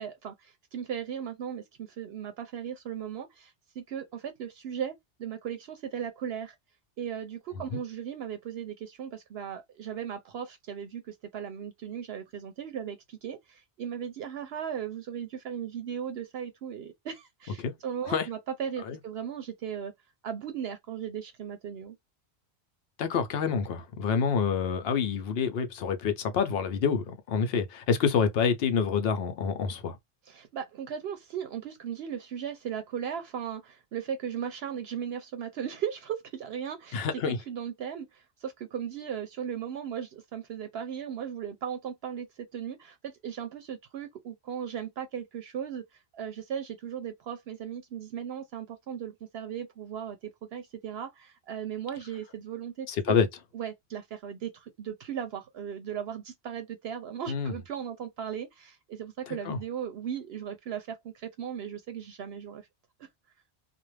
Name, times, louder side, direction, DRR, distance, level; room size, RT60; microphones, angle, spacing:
voice 1, 0.0-4.9 5.2-6.5 7.0-19.9 20.2-22.0 30.3-37.0 37.3-45.8 46.1-53.2 53.5-62.6, right 8 dB, 70° right, 0.8 m, -37 dB
voice 2, 23.0-30.0 36.9-37.4 52.9-53.3 57.3-57.5 59.3-59.6, left 6 dB, 65° left, 0.8 m, -27 dB
2.4 x 2.1 x 3.1 m
omnidirectional pair, 1.1 m